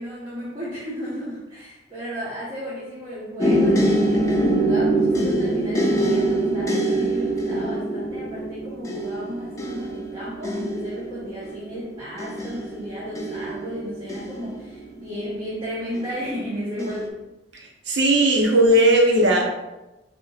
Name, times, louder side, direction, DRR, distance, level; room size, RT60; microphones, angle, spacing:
voice 1, 0.0-17.2, equal, 30° right, -10 dB, 1.2 m, -34 dB
sound 1, 3.4-15.3 15.9-16.4 16.8-17.0, right 1 dB, 15° left, 0.6 m, -24 dB
voice 2, 17.9-19.4, right 1 dB, 80° right, 0 dB, 0.9 m, -17 dB
5.3 x 3.0 x 2.5 m, 0.99 s
head